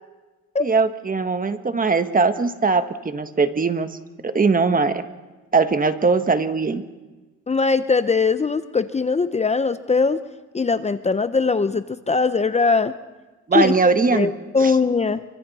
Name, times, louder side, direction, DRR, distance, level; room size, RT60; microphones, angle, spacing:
voice 1, 0.6-3.9 4.2-5.0 5.5-6.8 13.5-14.3 14.6-14.7, right 4 dB, 30° right, 9 dB, 1.4 m, -20 dB
voice 2, 7.5-10.2 10.5-12.9 13.5-13.7 14.1-15.2, left 4 dB, 20° left, 12 dB, 0.7 m, -20 dB
29.0 x 25.0 x 4.2 m, 1.2 s
cardioid pair, 90°, 30 cm